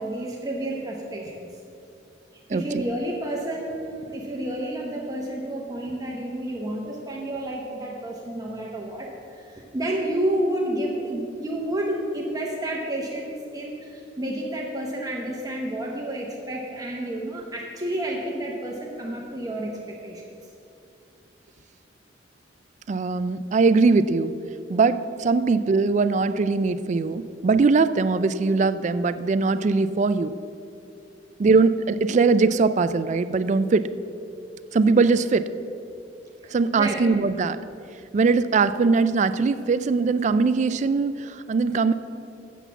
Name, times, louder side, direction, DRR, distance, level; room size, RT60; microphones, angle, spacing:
voice 1, 0.0-1.5 2.5-20.4 36.7-37.0, right 1 dB, 20° right, -2 dB, 0.9 m, -30 dB
voice 2, 2.5-2.8 22.9-24.3 24.7-30.3 31.4-33.9 34.7-35.5 36.5-37.6 38.1-41.9, right 4 dB, 40° right, 13 dB, 0.3 m, -21 dB
8.2 x 7.2 x 6.9 m, 2.6 s
head